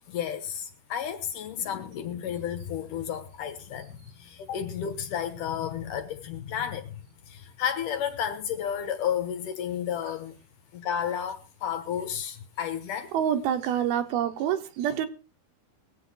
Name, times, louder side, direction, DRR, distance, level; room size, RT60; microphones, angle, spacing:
voice 1, 0.1-7.0 7.3-10.4 10.7-13.1, left 9 dB, 65° left, 2.5 m, -32 dB
voice 2, 13.1-15.1, right 9 dB, 80° right, 3.0 m, -27 dB
21.5 x 8.3 x 3.9 m
omnidirectional pair, 4.4 m